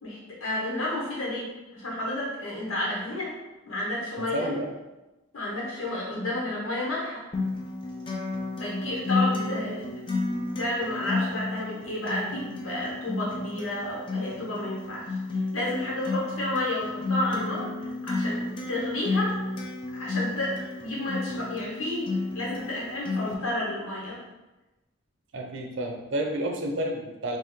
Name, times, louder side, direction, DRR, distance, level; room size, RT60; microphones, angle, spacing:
voice 1, 0.0-3.4 3.6-4.5 5.3-7.2 8.6-9.9 10.6-15.1 15.5-19.4 19.9-24.2, left 1 dB, 85° left, -4 dB, 1.3 m, -31 dB
voice 2, 4.2-4.7 25.3-27.4, right 1 dB, 60° right, 2 dB, 0.5 m, -30 dB
Acoustic guitar, 7.3-23.3, left 3 dB, 25° left, 0.4 m, -32 dB
3.1 x 2.8 x 3.6 m, 1.0 s
head